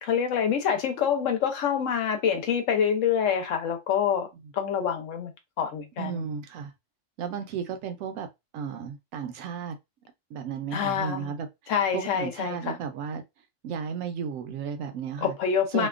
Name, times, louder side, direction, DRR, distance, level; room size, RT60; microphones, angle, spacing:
voice 1, 0.0-4.3 4.5-5.3 5.6-6.2 10.7-11.3 11.7-12.8 15.2-15.9, left 7 dB, 75° left, 1.0 m, -26 dB
voice 2, 6.0-6.7 7.2-8.3 8.5-9.8 10.3-11.5 11.9-13.2 13.6-15.3 15.7-15.9, right 7 dB, 90° right, 1.0 m, -34 dB
2.8 x 2.2 x 2.4 m
omnidirectional pair, 1.3 m